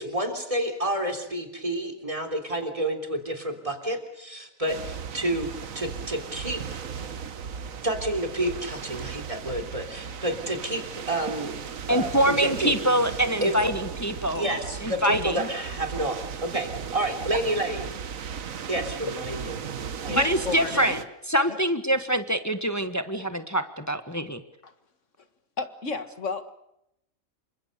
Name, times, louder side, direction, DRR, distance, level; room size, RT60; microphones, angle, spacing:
voice 1, 0.0-5.5 5.8-7.1 7.8-11.5 11.9-12.7 13.4-13.6 14.3-16.2 16.5-17.9 18.7-19.6 20.0-20.2, right 1 dB, 25° right, 6 dB, 3.6 m, -29 dB
sound 1, 4.7-21.0, right 7 dB, 75° right, 1.6 m, -36 dB
voice 2, 11.9-14.4 14.8-15.5 17.3-17.4 20.1-24.4, equal, 15° left, 9 dB, 1.4 m, -25 dB
voice 3, 20.0-21.0 21.5-21.6 24.6-24.7 25.6-26.5, left 4 dB, 65° left, 10 dB, 2.1 m, -32 dB
28.0 x 25.0 x 6.8 m, 0.81 s
omnidirectional pair, 1.4 m